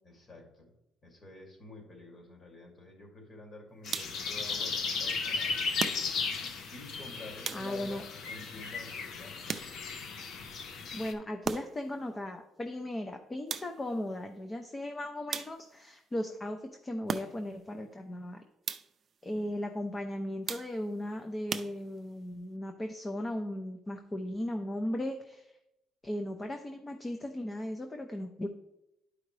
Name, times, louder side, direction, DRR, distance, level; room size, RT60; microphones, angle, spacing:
voice 1, 0.0-0.7 1.0-4.7 5.0-5.6 6.7-9.6 19.3-19.5, left 2 dB, 35° left, 1 dB, 2.6 m, -49 dB
sound 1, 3.9-11.1, left 5 dB, 65° left, 0.9 m, -35 dB
sound 2, 3.9-4.4 5.8-6.4 7.4-8.0 9.5-10.1 11.4-12.0 13.5-14.0 15.3-15.9 17.1-17.6 18.6-19.1 20.5-21.0 21.5-22.2, right 6 dB, 40° right, 0.5 m, -38 dB
voice 2, 7.5-8.0 10.9-18.4 19.2-25.5 26.0-28.5, left 1 dB, 20° left, 5 dB, 0.7 m, -37 dB
11.5 x 4.9 x 3.3 m, 0.87 s
cardioid pair, 115°, 0 cm